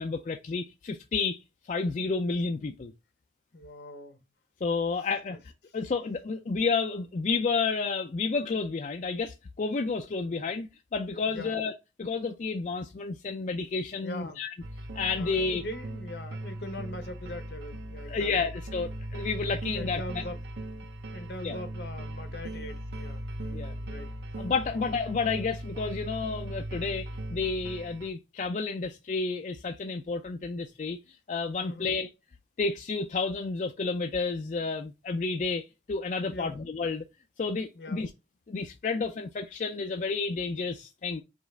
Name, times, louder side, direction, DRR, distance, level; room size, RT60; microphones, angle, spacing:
voice 1, 0.0-1.4 1.7-2.9 4.6-5.4 5.7-11.7 12.0-14.5 14.9-15.6 18.1-20.2 21.4-21.6 23.5-23.7 24.4-32.1 32.6-37.0 37.4-38.1 38.5-41.2, left 4 dB, 45° left, 0.3 m, -31 dB
voice 2, 3.5-4.2 5.3-5.4 10.2-10.4 11.3-11.6 14.0-14.4 15.1-18.3 18.7-19.0 19.7-20.4 21.1-24.1 24.7-24.8 31.6-32.0 36.3-36.6 37.7-38.1, left 1 dB, 75° left, 1.0 m, -42 dB
sound 1, 14.6-28.1, right 1 dB, 75° right, 0.6 m, -38 dB
5.0 x 2.4 x 3.3 m
head